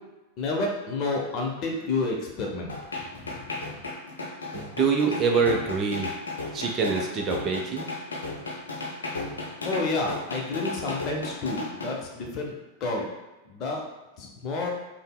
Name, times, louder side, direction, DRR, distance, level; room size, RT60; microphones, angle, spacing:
voice 1, 0.4-2.7 3.1-3.8 9.6-12.6 12.8-13.1 13.5-13.8 14.2-14.7, left 3 dB, 35° left, 0 dB, 0.7 m, -30 dB
sound 1, 2.7-11.9, left 3 dB, 70° left, 0.6 m, -34 dB
voice 2, 4.5-6.1 6.5-7.9, right 5 dB, 30° right, 1 dB, 0.4 m, -25 dB
5.1 x 2.0 x 2.3 m, 1.1 s
figure-of-eight pair, 90°, 0 cm